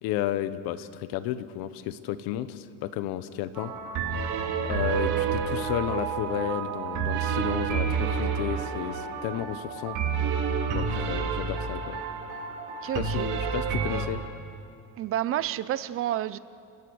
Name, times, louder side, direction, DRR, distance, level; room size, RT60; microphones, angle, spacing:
voice 1, 0.0-3.7 4.6-10.0 10.7-12.0 13.0-14.2, left 12 dB, 75° left, 13 dB, 1.2 m, -32 dB
sound 1, 3.5-14.1, right 6 dB, 55° right, 2.3 m, -29 dB
voice 2, 12.8-13.3 15.0-16.4, right 12 dB, 35° right, 16 dB, 0.6 m, -29 dB
30.0 x 20.0 x 6.5 m, 2.5 s
cardioid pair, 165°, 36 cm